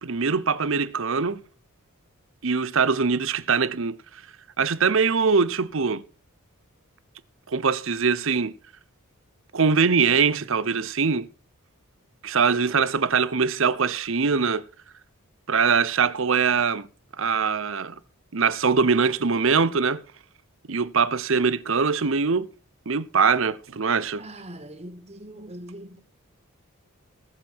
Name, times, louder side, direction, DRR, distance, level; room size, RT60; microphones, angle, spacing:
voice 1, 0.0-1.4 2.4-4.0 4.6-6.0 7.5-8.5 9.5-11.3 12.2-14.6 15.5-16.9 17.2-18.0 18.3-20.0 20.7-22.5 22.9-24.2, right 5 dB, 60° right, 0.8 m, -22 dB
voice 2, 24.2-26.0, right 1 dB, 30° right, 1.8 m, -41 dB
19.0 x 7.4 x 4.6 m
head